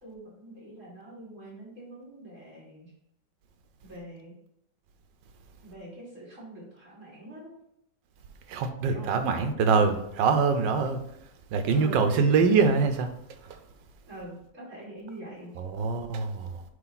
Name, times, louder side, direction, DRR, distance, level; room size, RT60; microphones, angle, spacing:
voice 1, 0.0-2.9 3.8-4.4 5.6-7.5 8.9-9.1 11.7-12.8 14.1-15.6, right 2 dB, 45° right, -6 dB, 3.3 m, -44 dB
voice 2, 8.5-11.0 11.5-13.1 13.5-13.6 15.6-16.6, right 5 dB, 85° right, 7 dB, 1.5 m, -24 dB
9.6 x 3.2 x 4.1 m, 0.75 s
omnidirectional pair, 1.9 m